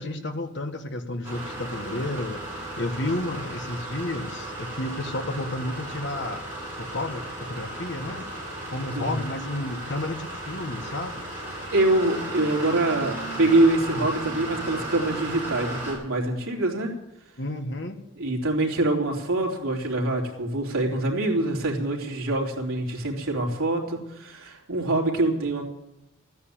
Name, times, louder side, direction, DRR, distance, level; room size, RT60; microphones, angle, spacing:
voice 1, 0.0-6.4 6.8-7.2 7.5-8.2 8.7-11.4 17.4-18.0, left 1 dB, 55° left, 7 dB, 1.5 m, -31 dB
sound 1, 1.2-15.9, right 1 dB, 10° right, 6.8 m, -35 dB
voice 2, 11.7-16.9 18.2-25.6, right 2 dB, 85° right, 0 dB, 3.5 m, -25 dB
14.5 x 9.8 x 8.8 m, 0.90 s
head